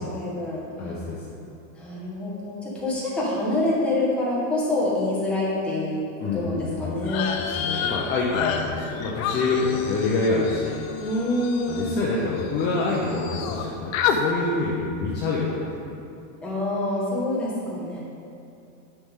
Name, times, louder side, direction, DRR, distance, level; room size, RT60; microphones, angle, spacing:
voice 1, 0.0-1.0 1.8-6.0 6.3-7.3 11.0-12.2 16.4-18.0, left 2 dB, 5° left, -8 dB, 1.5 m, -26 dB
voice 2, 0.8-1.5 6.2-7.0 7.4-10.8 11.7-16.0, left 3 dB, 25° left, -5 dB, 0.8 m, -27 dB
sound 1, 7.0-12.7 12.9-13.6 13.9-14.2, left 7 dB, 70° left, 0.8 m, -30 dB
9.7 x 5.8 x 3.7 m, 2.7 s
supercardioid pair, 155°, 43 cm